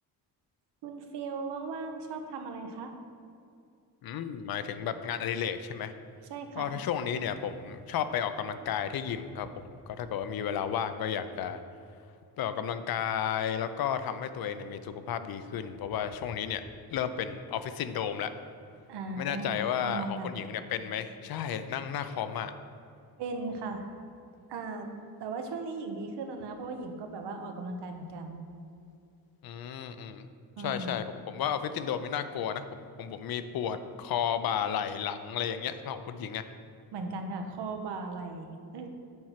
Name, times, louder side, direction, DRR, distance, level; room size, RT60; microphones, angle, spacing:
voice 1, 0.8-2.9 6.3-6.7 18.9-20.3 23.2-23.9 24.5-24.9 25.2-28.4 30.6-30.9 36.9-38.5 38.7-38.9, right 3 dB, 85° right, 5 dB, 1.0 m, -37 dB
voice 2, 4.0-5.9 6.6-11.6 12.4-16.6 16.9-18.3 19.2-22.5 29.4-30.3 30.6-36.5, left 8 dB, 65° left, 11 dB, 0.6 m, -33 dB
7.6 x 4.4 x 5.8 m, 2.5 s
cardioid pair, 110°, 39 cm